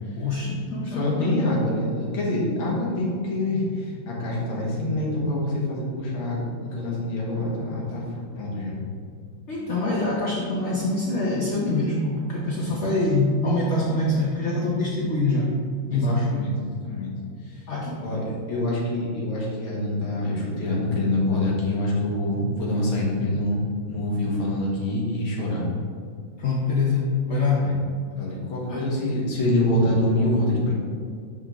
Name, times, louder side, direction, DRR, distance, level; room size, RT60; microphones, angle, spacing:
voice 1, 0.2-1.3 9.5-15.5 15.9-16.3 17.7-18.0 26.4-27.7 28.7-28.9, left 2 dB, 65° left, -4 dB, 0.7 m, -24 dB
voice 2, 0.9-8.0 8.4-8.8 12.6-12.8 15.9-16.5 16.8-17.1 17.5-17.6 18.0-23.6 23.9-25.6 27.6-27.8 28.1-30.7, left 1 dB, 90° left, -4 dB, 2.2 m, -26 dB
9.9 x 3.7 x 3.0 m, 2.2 s
omnidirectional pair, 2.2 m